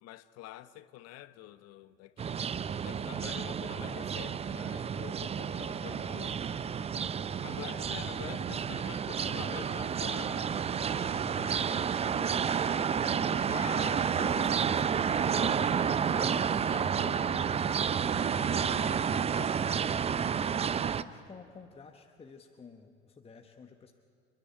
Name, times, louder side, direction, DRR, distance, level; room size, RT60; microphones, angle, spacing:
voice 1, 0.0-2.4 2.8-6.4 7.4-11.9 13.2-17.6 18.3-20.0, left 14 dB, 45° left, 1.0 m, -47 dB
sound 1, 2.2-21.0, right 7 dB, 20° right, 0.6 m, -30 dB
voice 2, 21.0-23.9, left 5 dB, 15° left, 1.1 m, -52 dB
29.5 x 10.5 x 9.9 m
figure-of-eight pair, 75°, 35 cm